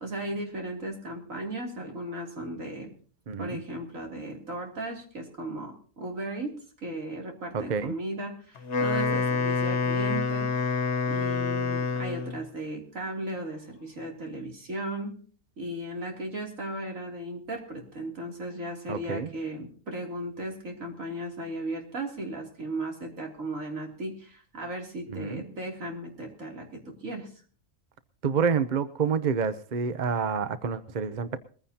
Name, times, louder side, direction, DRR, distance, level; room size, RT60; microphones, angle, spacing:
voice 1, 0.0-2.9 3.4-10.5 11.1-15.2 15.6-27.3, right 1 dB, 80° right, 1 dB, 3.5 m, -36 dB
voice 2, 3.3-3.6 7.5-8.0 18.9-19.3 25.1-25.4 28.2-31.4, right 6 dB, 40° right, 13 dB, 0.8 m, -28 dB
Wind instrument woodwind instrument, 8.6-12.4, left 5 dB, 60° left, 1.4 m, -27 dB
21.5 x 15.0 x 2.8 m, 0.43 s
omnidirectional pair, 1.4 m